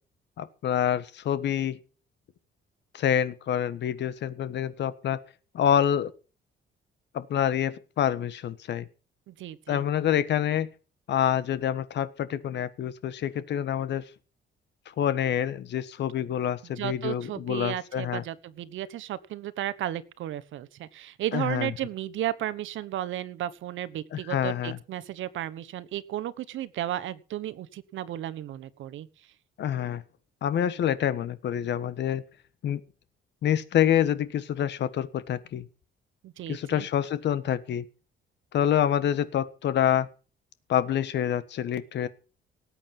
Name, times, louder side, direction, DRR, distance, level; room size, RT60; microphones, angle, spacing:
voice 1, 0.4-1.8 2.9-5.2 5.5-6.1 7.1-8.9 9.7-10.7 11.1-14.0 15.0-18.2 21.3-21.7 24.1-24.8 29.6-30.0 30.4-32.2 32.6-32.8 33.4-35.7 36.5-37.8 38.5-40.1 40.7-42.1, left 10 dB, 60° left, 15 dB, 1.4 m, -27 dB
voice 2, 9.3-9.8 16.8-29.1 36.2-36.9, right 13 dB, 75° right, 14 dB, 1.2 m, -34 dB
18.5 x 8.7 x 5.9 m, 0.36 s
cardioid pair, 150°, 20 cm